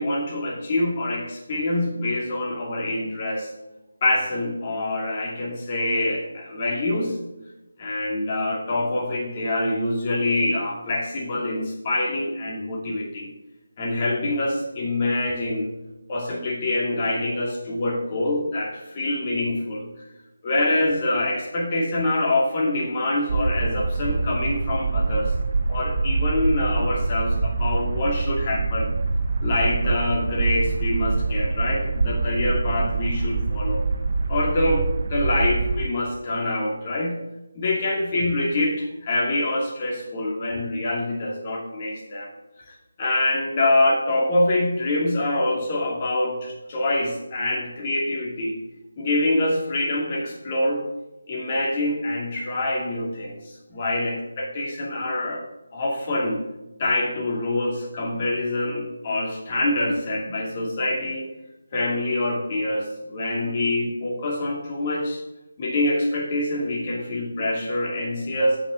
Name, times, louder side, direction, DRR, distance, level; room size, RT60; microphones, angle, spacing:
voice 1, 0.0-3.5 4.0-7.2 7.8-13.3 13.8-15.7 16.1-19.9 20.4-25.3 25.7-28.9 29.4-33.8 34.3-37.2 37.5-42.3 42.7-48.6 49.0-50.8 51.3-53.4 53.7-55.4 55.7-56.4 56.8-61.3 61.7-65.2 65.6-68.6, left 1 dB, 35° left, -2 dB, 2.5 m, -25 dB
sound 1, 23.3-35.9, right 3 dB, 55° right, 0.6 m, -25 dB
8.0 x 6.0 x 6.3 m, 0.99 s
figure-of-eight pair, 160°, 0 cm